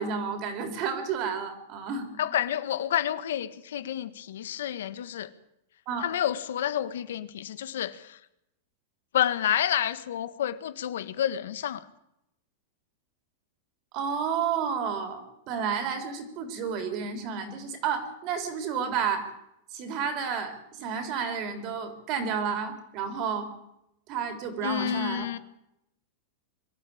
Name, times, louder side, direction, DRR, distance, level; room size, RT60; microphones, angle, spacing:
voice 1, 0.0-2.1 5.9-6.1 13.9-19.3 19.7-23.5 24.1-25.3, right 6 dB, 35° right, 3.7 m, -31 dB
voice 2, 2.2-5.3 6.0-8.2 9.1-11.8 24.6-25.4, left 10 dB, 80° left, 1.5 m, -29 dB
23.5 x 13.0 x 8.7 m
supercardioid pair, 165°, 0 cm